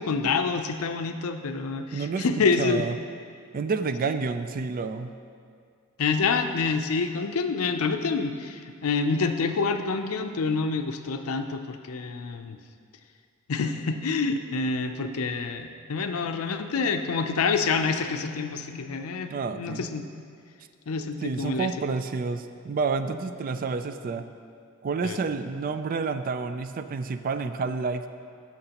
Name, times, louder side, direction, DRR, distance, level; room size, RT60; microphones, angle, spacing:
voice 1, 0.0-2.9 6.0-12.6 13.5-19.3 19.6-20.1 20.9-21.7 25.0-25.2, left 4 dB, 90° left, 7 dB, 0.5 m, -27 dB
voice 2, 1.9-2.3 2.6-3.0 3.5-5.1 19.3-19.8 21.2-24.3 24.8-28.1, right 4 dB, 40° right, 10 dB, 0.3 m, -29 dB
14.5 x 5.8 x 2.9 m, 2.3 s
head